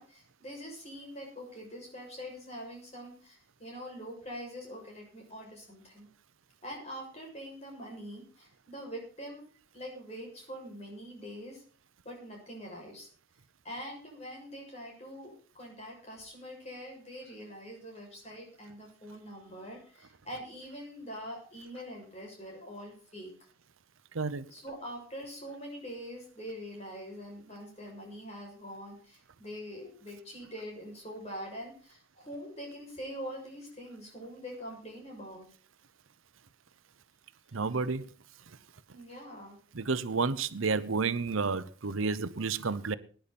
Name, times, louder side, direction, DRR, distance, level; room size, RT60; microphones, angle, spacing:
voice 1, 0.0-6.1 6.6-9.5 9.7-11.6 12.0-13.1 13.6-23.3 24.5-35.5 38.9-39.6, equal, 30° left, 6.8 m, -44 dB
voice 2, 37.5-38.0 39.8-43.0, right 4 dB, 85° right, 0.8 m, -30 dB
19.5 x 10.0 x 4.3 m
head